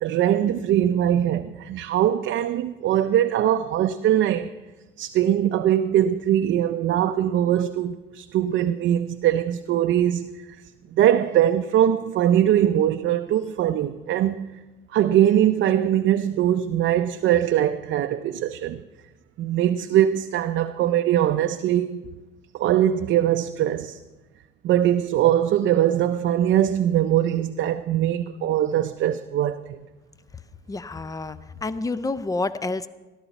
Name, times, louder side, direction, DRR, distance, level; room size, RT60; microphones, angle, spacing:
voice 1, 0.0-4.5 5.0-10.3 10.9-14.5 14.9-18.8 19.4-22.0 22.5-24.0 24.6-29.8, right 11 dB, 70° right, 0.5 m, -21 dB
voice 2, 30.7-32.9, left 3 dB, 15° left, 0.5 m, -29 dB
14.0 x 12.0 x 4.0 m
cardioid pair, 90°, 20 cm